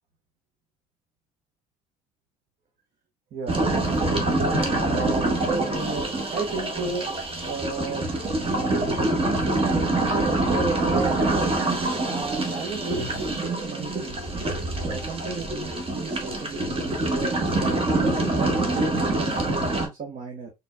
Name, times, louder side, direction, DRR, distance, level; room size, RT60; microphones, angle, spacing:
voice 1, 3.3-4.4 4.8-7.1 7.4-8.1 10.4-11.6 12.0-14.3 14.7-20.5, right 4 dB, 50° right, 1.0 m, -33 dB
sound 1, 3.5-19.9, right 2 dB, 30° right, 1.3 m, -25 dB
4.2 x 3.4 x 2.2 m
hypercardioid pair, 60°, 18 cm